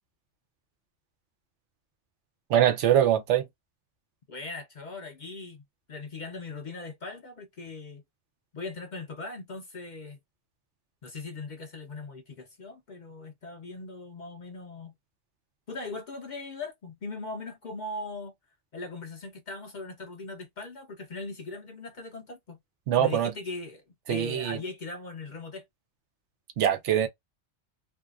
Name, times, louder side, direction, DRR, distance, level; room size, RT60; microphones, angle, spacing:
voice 1, 2.5-3.4 22.9-23.3 24.1-24.6 26.6-27.1, right 10 dB, 85° right, 1.0 m, -23 dB
voice 2, 4.3-5.6 5.9-8.0 8.5-10.2 11.0-14.9 15.7-18.3 18.7-22.6 23.0-23.8 24.1-25.6, left 3 dB, 55° left, 0.5 m, -39 dB
2.5 x 2.3 x 2.3 m
omnidirectional pair, 1.2 m